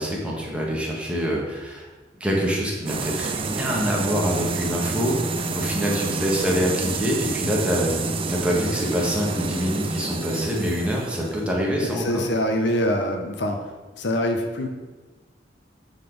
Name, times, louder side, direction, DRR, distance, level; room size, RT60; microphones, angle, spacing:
voice 1, 0.0-1.9 2.2-8.0 8.3-12.2, equal, 5° right, -3 dB, 1.5 m, -25 dB
sound 1, 2.9-12.5, right 3 dB, 30° right, 0.5 m, -29 dB
voice 2, 11.8-13.6 14.0-14.7, equal, 70° left, 4 dB, 0.8 m, -24 dB
8.7 x 4.1 x 5.2 m, 1.3 s
head